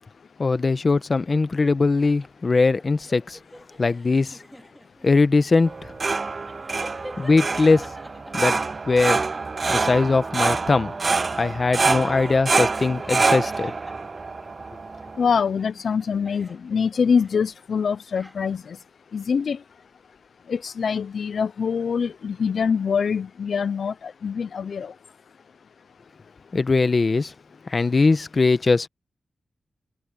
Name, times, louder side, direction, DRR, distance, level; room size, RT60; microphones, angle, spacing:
voice 1, 0.4-3.4 3.8-4.4 5.0-5.9 7.2-7.9 8.3-8.6 8.9-9.2 9.7-10.9 11.4-13.7 26.5-27.3 27.7-28.9, left 3 dB, 40° left, 1.0 m, -20 dB
sound 1, 2.0-15.0 15.3-17.6 17.9-18.8, equal, ahead, 2.4 m, -47 dB
sound 2, 5.6-15.4, right 4 dB, 40° right, 0.3 m, -26 dB
voice 2, 15.2-18.8 19.1-19.6 20.5-24.9, left 6 dB, 70° left, 0.4 m, -24 dB
open air
wide cardioid pair, 130°, 0 cm